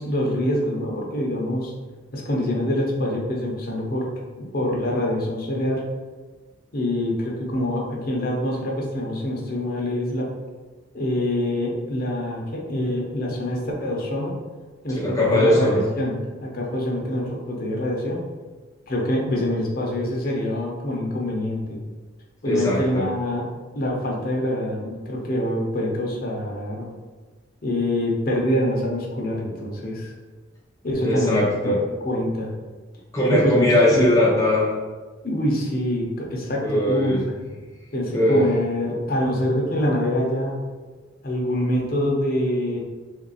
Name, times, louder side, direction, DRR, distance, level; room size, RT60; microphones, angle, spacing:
voice 1, 0.0-1.7 2.1-4.1 4.4-5.8 6.7-10.3 10.9-14.4 14.8-16.1 16.4-18.2 18.9-21.8 22.4-23.4 23.7-26.9 27.6-30.1 30.8-31.4 32.0-32.5 33.3-33.7 34.0-34.1 35.2-37.2 37.9-40.6 41.2-42.8, left 1 dB, 50° left, -2 dB, 0.8 m, -25 dB
voice 2, 14.9-15.8 22.4-23.1 31.0-31.8 33.1-34.8 36.6-37.2 38.1-38.4, left 1 dB, 15° left, -6 dB, 0.6 m, -20 dB
3.4 x 2.6 x 4.0 m, 1.4 s
head